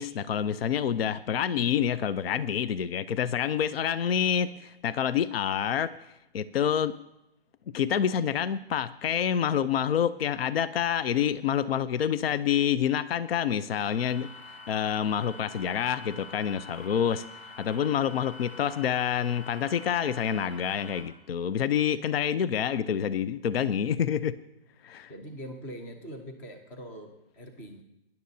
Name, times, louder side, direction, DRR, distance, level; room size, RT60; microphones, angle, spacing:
voice 1, 0.0-5.9 6.3-7.0 7.7-14.3 14.7-24.4 24.8-25.1, left 8 dB, 70° left, 16 dB, 0.6 m, -27 dB
sound 1, 13.8-21.0, left 2 dB, 25° left, 2.4 m, -46 dB
voice 2, 25.1-27.8, equal, 5° left, 6 dB, 0.3 m, -42 dB
19.5 x 10.5 x 2.7 m, 0.89 s
hypercardioid pair, 150°, 31 cm